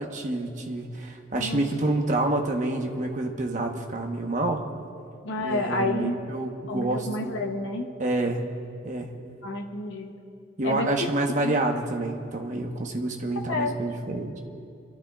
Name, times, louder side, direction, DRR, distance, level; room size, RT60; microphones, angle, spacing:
voice 1, 0.0-4.6 5.4-7.4 8.0-8.4 8.8-9.1 10.6-14.4, right 2 dB, 40° right, 2 dB, 1.2 m, -28 dB
voice 2, 1.4-1.7 5.2-6.2 6.7-7.9 9.4-10.1 10.6-10.9 11.4-11.5 13.5-13.7, left 2 dB, 85° left, 2 dB, 0.9 m, -29 dB
28.5 x 13.0 x 2.5 m, 2.4 s
head